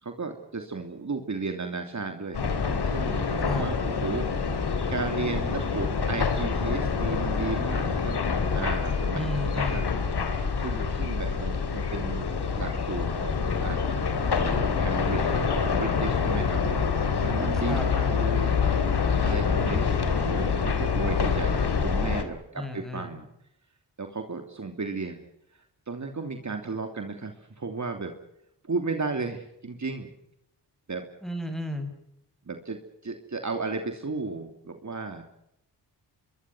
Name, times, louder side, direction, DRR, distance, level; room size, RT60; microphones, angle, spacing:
voice 1, 0.0-2.4 2.8-8.2 8.5-9.8 10.6-12.3 12.6-13.8 14.4-16.8 17.2-18.6 19.2-23.3 24.0-25.2 25.9-28.1 28.6-30.1 30.9-31.0 32.5-35.2, right 4 dB, 40° right, 5 dB, 3.0 m, -34 dB
sound 1, 2.3-22.2, left 5 dB, 65° left, 3.5 m, -26 dB
voice 2, 3.4-3.7 9.1-9.9 17.7-17.9 22.5-23.1 31.2-31.9, left 1 dB, ahead, 7 dB, 6.7 m, -33 dB
26.0 x 22.5 x 6.2 m, 0.78 s
cardioid pair, 60°, 42 cm